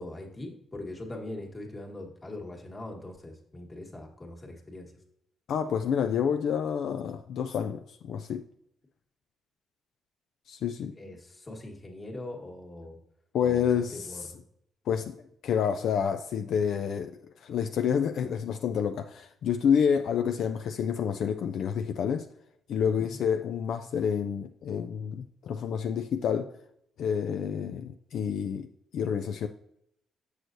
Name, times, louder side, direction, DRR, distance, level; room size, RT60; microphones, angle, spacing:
voice 1, 0.0-4.9 11.0-13.0 13.4-14.4 22.9-23.2, left 1 dB, 25° left, 1.5 m, -42 dB
voice 2, 5.5-8.4 10.5-11.0 13.3-14.3 14.9-15.2 15.4-22.3 22.7-26.5 27.0-29.5, left 7 dB, 70° left, 0.3 m, -29 dB
6.4 x 6.2 x 2.6 m
cardioid pair, 90°, 0 cm